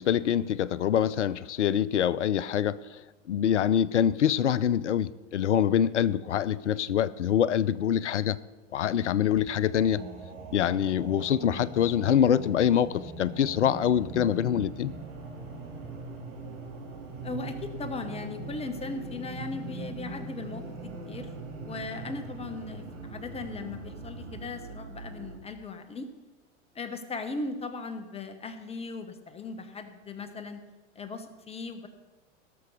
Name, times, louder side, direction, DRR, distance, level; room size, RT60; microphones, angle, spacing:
voice 1, 0.0-3.0 3.3-8.4 8.7-10.0 10.5-14.9, left 9 dB, 75° left, 20 dB, 0.5 m, -25 dB
sound 1, 9.4-24.4, right 2 dB, 55° right, 3.3 m, -42 dB
sound 2, 13.5-25.4, right 4 dB, 80° right, 1.7 m, -45 dB
voice 2, 17.2-21.3 21.6-26.1 26.7-30.6 30.9-31.9, left 3 dB, 15° left, 9 dB, 1.0 m, -38 dB
17.5 x 6.9 x 5.3 m, 1.2 s
figure-of-eight pair, 90°, 37 cm